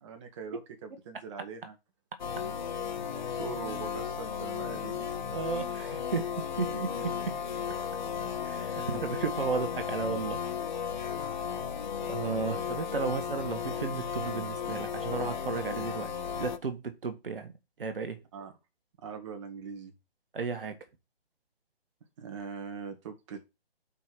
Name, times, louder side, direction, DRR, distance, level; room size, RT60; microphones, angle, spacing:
voice 1, 0.0-1.7 3.1-5.3 7.0-7.1 18.3-18.5 19.0-19.9 22.2-23.5, right 6 dB, 30° right, 1.6 m, -42 dB
sound 1, 2.2-16.6, left 7 dB, 45° left, 0.8 m, -35 dB
voice 2, 5.3-6.3 6.6-7.1 8.4-10.4 12.1-18.2 20.3-20.8, right 5 dB, 60° right, 1.6 m, -34 dB
5.3 x 4.5 x 6.1 m
figure-of-eight pair, 150°, 31 cm